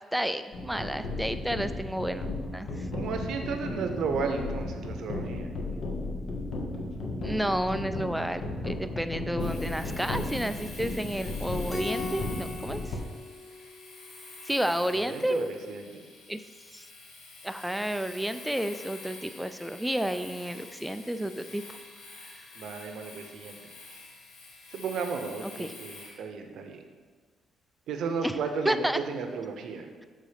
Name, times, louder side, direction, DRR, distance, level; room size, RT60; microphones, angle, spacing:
voice 1, 0.1-2.9 7.2-12.8 14.5-15.5 16.3-16.4 16.7-16.9 17.4-21.8 22.2-22.3 25.4-25.7 28.2-28.4 28.7-29.0, equal, 5° right, 10 dB, 0.3 m, -31 dB
sound 1, 0.5-13.0, left 2 dB, 60° left, 1.0 m, -35 dB
voice 2, 0.9-1.6 2.9-6.2 14.9-16.0 22.5-23.6 24.7-26.8 27.9-29.9, right 5 dB, 75° right, 5 dB, 0.7 m, -34 dB
Domestic sounds home sounds, 9.4-26.2, left 3 dB, 85° left, 1.1 m, -47 dB
Keyboard (musical), 11.7-14.3, left 3 dB, 20° left, 1.1 m, -39 dB
6.9 x 3.7 x 5.0 m, 1.5 s
cardioid pair, 90°, 0 cm